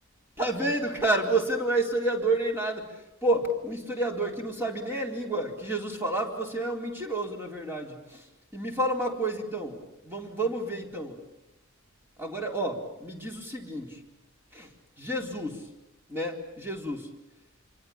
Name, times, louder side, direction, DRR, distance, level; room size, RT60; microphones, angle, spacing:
voice 1, 0.4-8.3 8.5-11.2 12.2-14.0 14.5-14.7 15.0-15.7 16.1-17.1, right 2 dB, 10° right, 1 dB, 4.2 m, -30 dB
27.0 x 25.0 x 7.4 m, 0.92 s
head